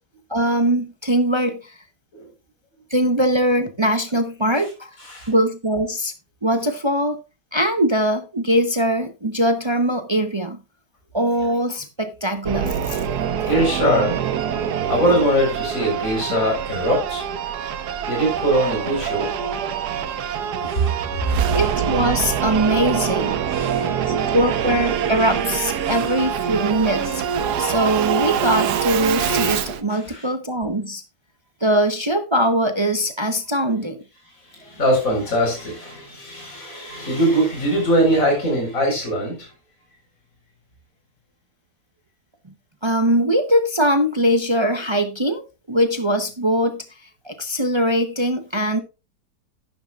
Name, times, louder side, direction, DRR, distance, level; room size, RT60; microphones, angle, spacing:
voice 1, 0.3-1.7 2.9-4.9 5.3-6.1 6.4-7.2 7.5-10.6 11.1-13.0 21.5-23.4 24.1-27.2 27.6-31.0 31.6-34.0 42.8-45.4 45.7-46.8 47.2-48.8, right 1 dB, 30° right, 8 dB, 0.5 m, -21 dB
voice 2, 5.0-5.3 13.4-14.2 14.8-17.2 18.1-19.3 20.6-21.4 23.5-23.9 29.9-30.3 34.4-39.5, equal, 55° left, 0 dB, 4.7 m, -22 dB
Singing / Musical instrument, 12.4-29.8, right 8 dB, 85° right, 1.4 m, -24 dB
11.5 x 10.5 x 2.3 m, 0.28 s
omnidirectional pair, 1.7 m